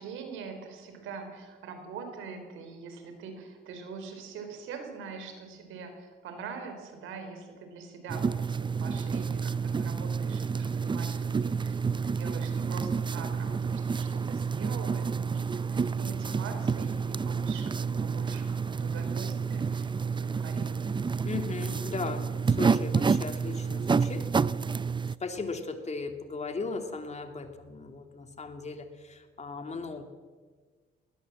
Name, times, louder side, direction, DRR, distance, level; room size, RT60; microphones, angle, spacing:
voice 1, 0.0-21.0, right 5 dB, 90° right, 6 dB, 4.4 m, -43 dB
sound 1, 8.1-25.2, right 5 dB, 25° right, 0.5 m, -29 dB
voice 2, 21.2-24.3 25.2-30.0, left 4 dB, 35° left, 6 dB, 2.7 m, -37 dB
19.5 x 19.5 x 7.6 m, 1.5 s
cardioid pair, 90°, 20 cm